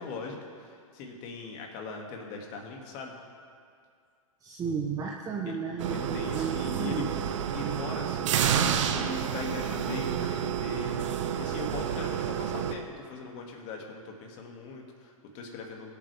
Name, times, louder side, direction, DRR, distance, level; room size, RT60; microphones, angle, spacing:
voice 1, 0.0-3.2 5.4-5.6 5.8-7.1 7.5-15.9, left 3 dB, 40° left, 1 dB, 2.4 m, -40 dB
voice 2, 4.4-7.1, right 6 dB, 20° right, 0 dB, 1.0 m, -33 dB
sound 1, 5.8-12.7, right 9 dB, 60° right, 0.9 m, -30 dB
22.5 x 8.5 x 3.6 m, 2.2 s
hypercardioid pair, 115°, 18 cm